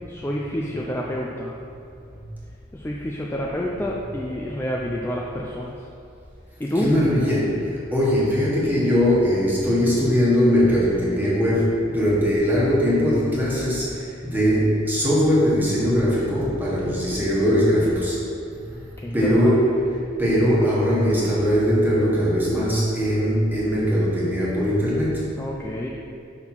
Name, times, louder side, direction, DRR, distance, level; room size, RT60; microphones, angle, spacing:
voice 1, 0.1-1.6 2.7-5.8 6.6-6.9 16.8-17.3 19.0-19.8 25.4-25.9, equal, 10° left, -2 dB, 0.4 m, -29 dB
voice 2, 6.8-18.2 18.7-18.8 19.1-19.9 20.2-25.3, equal, 10° right, -7 dB, 1.5 m, -20 dB
5.8 x 5.7 x 4.5 m, 2.5 s
head